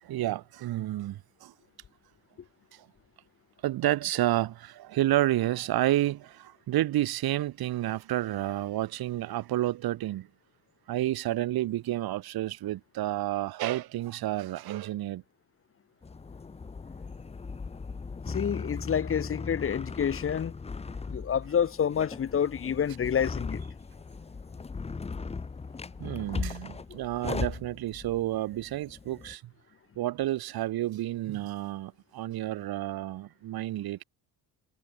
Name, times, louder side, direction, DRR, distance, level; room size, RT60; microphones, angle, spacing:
voice 1, 0.0-1.5 2.7-2.9 3.6-10.3 10.9-15.2 26.0-29.5 30.0-34.0, right 14 dB, 75° right, 2.0 m, -30 dB
sound 1, 16.0-29.3, left 4 dB, 15° left, 0.9 m, -38 dB
voice 2, 18.3-20.5 21.1-23.6, left 8 dB, 35° left, 1.4 m, -28 dB
cardioid pair, 150°, 37 cm